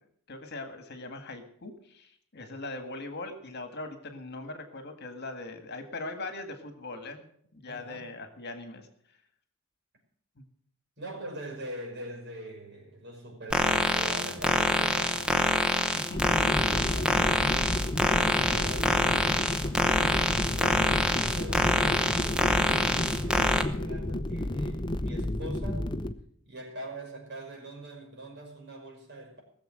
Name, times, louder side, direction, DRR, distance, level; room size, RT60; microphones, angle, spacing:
voice 1, 0.3-7.3 7.5-8.9 10.4-10.5 15.9-16.5, left 2 dB, 50° left, 1.9 m, -40 dB
voice 2, 7.7-8.1 11.0-15.7 16.7-19.2 20.6-25.8 26.4-29.4, right 1 dB, 55° right, 5.8 m, -43 dB
sound 1, 13.5-23.6, left 1 dB, 5° right, 1.0 m, -26 dB
sound 2, 16.1-26.1, left 1 dB, 20° left, 0.7 m, -31 dB
19.0 x 7.2 x 7.7 m
head